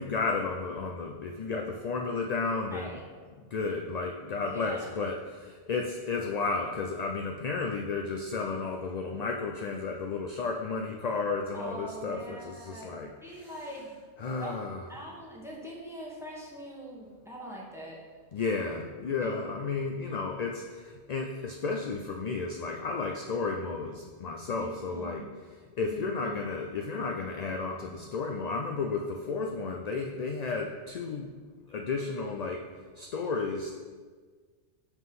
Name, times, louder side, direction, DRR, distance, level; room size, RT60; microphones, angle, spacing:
voice 1, 0.0-3.0 3.5-13.5 14.2-14.8 18.3-25.2 25.8-31.3 31.7-32.6 33.0-33.7, left 4 dB, 55° left, 2 dB, 0.4 m, -33 dB
voice 2, 2.7-3.0 4.4-5.0 11.5-14.0 14.4-14.6 14.9-18.0 19.2-19.4 24.5-25.3 25.9-26.4, right 1 dB, 5° right, -4 dB, 1.1 m, -43 dB
5.8 x 3.7 x 5.9 m, 1.5 s
omnidirectional pair, 1.1 m